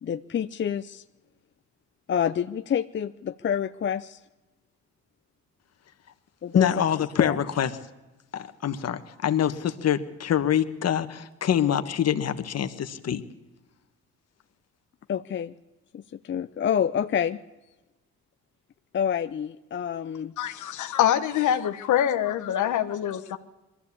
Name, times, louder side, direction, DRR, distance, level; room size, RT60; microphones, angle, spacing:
voice 1, 0.0-1.0 2.1-4.2 6.4-6.7 7.2-7.4 15.1-15.6 15.9-17.4 18.9-20.3, left 8 dB, 40° left, 0.6 m, -28 dB
voice 2, 6.5-7.7 8.3-13.2, left 9 dB, 55° left, 1.5 m, -25 dB
voice 3, 20.4-23.4, left 10 dB, 75° left, 1.3 m, -25 dB
22.0 x 14.0 x 8.5 m
cardioid pair, 90°, 30 cm